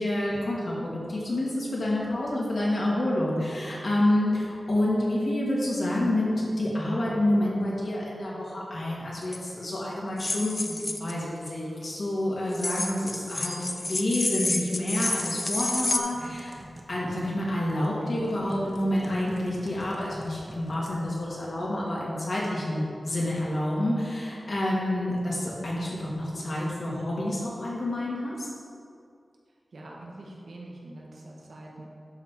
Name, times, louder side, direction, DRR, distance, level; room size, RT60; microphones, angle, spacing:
voice 1, 0.0-16.5 16.9-28.5, left 1 dB, 60° left, -5 dB, 2.1 m, -28 dB
sound 1, 9.2-9.4 10.2-11.1 12.5-16.0, left 2 dB, 30° left, 0.5 m, -30 dB
Typing, 16.1-21.5, right 1 dB, 30° right, 0.9 m, -46 dB
voice 2, 29.7-31.9, right 1 dB, 85° right, -3 dB, 1.4 m, -44 dB
11.5 x 3.8 x 4.6 m, 2.4 s
wide cardioid pair, 110°, 0 cm